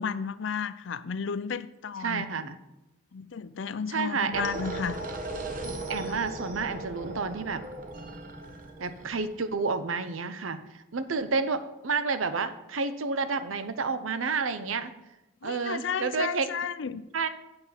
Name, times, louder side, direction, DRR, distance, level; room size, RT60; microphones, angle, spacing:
voice 1, 0.0-2.3 3.1-5.0 6.1-6.2 15.4-17.0, left 6 dB, 65° left, 15 dB, 0.4 m, -33 dB
voice 2, 2.0-2.6 3.9-4.5 5.9-7.6 8.8-14.9 15.4-16.5 17.1-17.3, right 4 dB, 80° right, 11 dB, 0.8 m, -30 dB
sound 1, 4.3-9.5, right 2 dB, 40° right, 1.0 m, -37 dB
8.0 x 7.7 x 5.7 m, 0.96 s
head